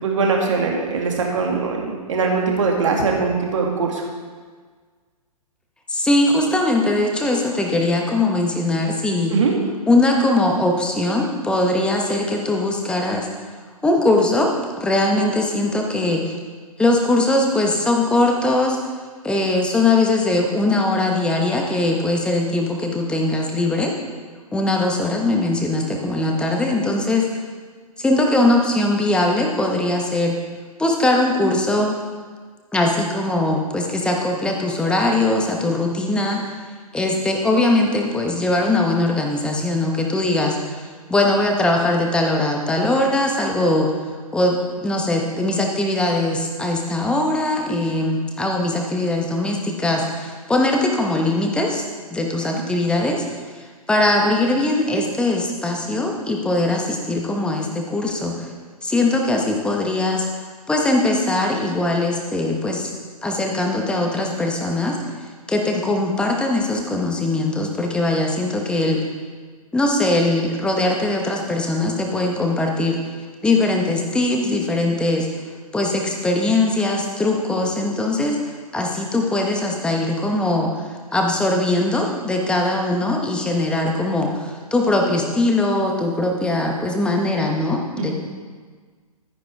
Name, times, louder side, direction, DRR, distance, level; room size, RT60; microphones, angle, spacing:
voice 1, 0.0-4.0 9.3-9.5 52.5-52.6 88.0-88.1, right 4 dB, 55° right, 0 dB, 2.2 m, -21 dB
voice 2, 5.9-9.3 9.9-13.3 13.8-14.5 14.8-16.4 16.8-18.8 19.2-23.9 24.5-27.4 28.0-30.3 30.8-31.9 32.7-36.6 36.9-43.9 44.3-58.5 58.8-60.3 60.7-62.9 63.2-65.0 65.5-69.0 69.7-73.1 73.4-75.3 75.7-88.1, left 2 dB, 5° left, 1 dB, 1.1 m, -21 dB
12.5 x 9.8 x 3.4 m, 1.5 s
figure-of-eight pair, 120°, 19 cm